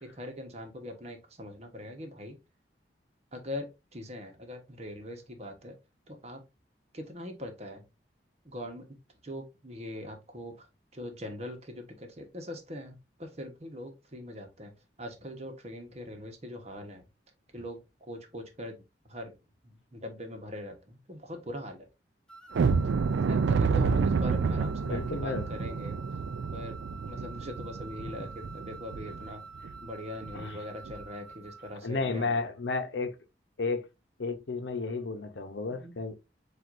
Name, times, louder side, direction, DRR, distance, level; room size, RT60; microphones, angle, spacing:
voice 1, 0.0-2.4 3.3-5.8 6.1-6.4 6.9-7.8 8.4-9.0 9.2-10.7 10.9-14.7 15.0-17.1 17.5-18.8 19.0-19.3 19.6-21.9 22.8-22.9 23.3-26.0 26.5-26.8 27.1-29.4 29.8-32.5 35.7-36.0, left 1 dB, 35° right, 1.1 m, -42 dB
sound 1, 22.3-31.9, right 4 dB, 5° left, 0.6 m, -47 dB
sound 2, 22.5-29.3 29.6-29.8 30.2-30.4 30.8-31.0, right 5 dB, 80° right, 0.4 m, -29 dB
voice 2, 24.8-25.5 30.3-30.6 31.8-33.2 33.6-33.9 34.2-36.3, left 3 dB, 80° left, 0.8 m, -32 dB
7.6 x 2.6 x 2.5 m
head